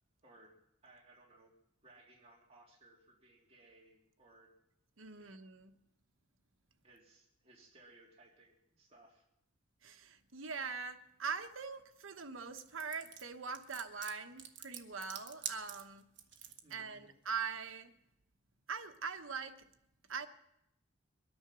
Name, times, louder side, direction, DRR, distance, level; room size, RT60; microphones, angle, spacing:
voice 1, 0.2-0.6 0.8-1.5 1.8-4.6 5.2-5.3 6.8-9.2 16.6-17.1, right 2 dB, 30° right, 2.9 m, -62 dB
voice 2, 5.0-5.7 9.8-16.0 16.7-17.9 18.7-19.6 20.1-20.3, right 5 dB, 80° right, 1.2 m, -42 dB
sound 1, 12.6-16.7, right 9 dB, 60° right, 1.4 m, -46 dB
23.0 x 9.9 x 6.2 m
head